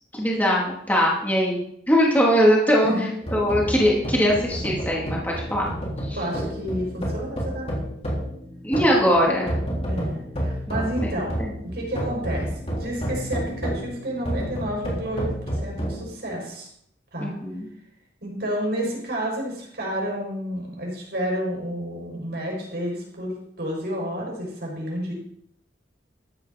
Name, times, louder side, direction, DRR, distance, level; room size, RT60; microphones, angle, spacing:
voice 1, 0.1-1.6 1.9-2.9 3.3-5.6 6.1-6.2 8.6-9.5 10.7-11.1 11.4-11.5 17.2-17.7, equal, 10° left, -4 dB, 2.8 m, -21 dB
sound 1, 3.2-16.0, equal, 35° left, 3.7 m, -30 dB
voice 2, 6.1-7.7 9.9-11.4 11.6-15.3 15.6-16.7 17.1-17.4 18.2-25.1, equal, 60° right, -2 dB, 5.2 m, -30 dB
14.0 x 10.0 x 4.2 m, 0.71 s
head